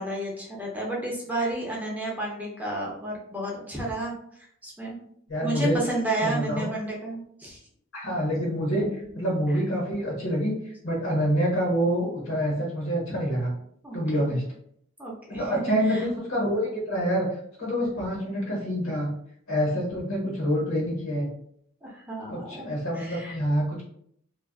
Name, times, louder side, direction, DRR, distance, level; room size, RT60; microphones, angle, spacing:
voice 1, 0.0-4.1 4.6-5.0 5.4-7.6 8.7-9.0 13.8-14.4 15.0-15.4 15.9-16.0 21.8-23.4, right 1 dB, 10° right, -3 dB, 0.5 m, -31 dB
voice 2, 5.3-5.8 6.2-6.6 7.9-8.8 9.1-10.5 10.8-13.5 13.9-14.4 15.3-17.3 17.6-19.1 19.5-21.3 22.3-23.8, equal, 85° left, -2 dB, 1.0 m, -26 dB
2.5 x 2.2 x 2.3 m, 0.67 s
head